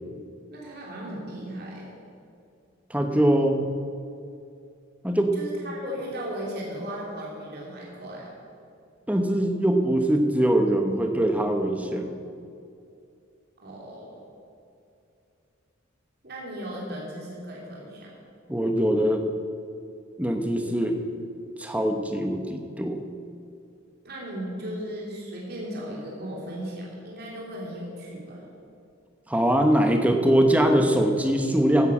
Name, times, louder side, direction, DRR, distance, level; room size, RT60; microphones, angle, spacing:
voice 1, 0.5-2.0 5.3-8.3 13.6-14.2 16.2-18.1 24.0-28.4, equal, 50° right, -4 dB, 3.0 m, -36 dB
voice 2, 2.9-3.6 5.0-5.4 9.1-12.1 18.5-19.2 20.2-21.0 21.6-23.0 29.3-31.9, right 1 dB, 5° right, 4 dB, 1.0 m, -22 dB
15.5 x 9.4 x 6.1 m, 2.5 s
head